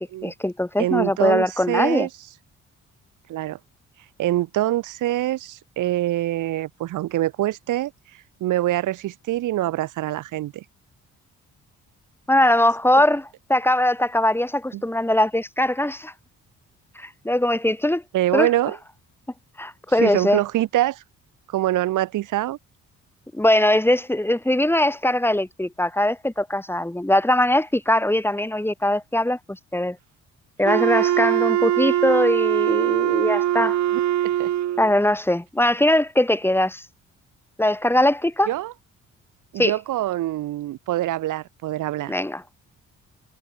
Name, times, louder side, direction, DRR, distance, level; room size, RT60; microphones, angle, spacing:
voice 1, 0.2-2.1 12.3-16.1 16.9-18.0 18.3-18.5 19.6-20.4 23.3-30.0 30.6-33.8 34.8-36.8 37.6-38.5 39.6-39.7 42.1-42.4, left 1 dB, 5° left, 5.0 m, -21 dB
voice 2, 0.8-2.1 3.3-3.6 4.2-7.9 8.4-10.6 14.7-14.8 18.1-18.8 20.0-21.0 21.5-22.6 33.9-34.5 38.5-38.7 39.5-42.1, right 15 dB, 85° right, 4.4 m, -24 dB
Wind instrument woodwind instrument, 30.6-34.9, right 11 dB, 65° right, 1.8 m, -22 dB
cardioid pair, 90°, 30 cm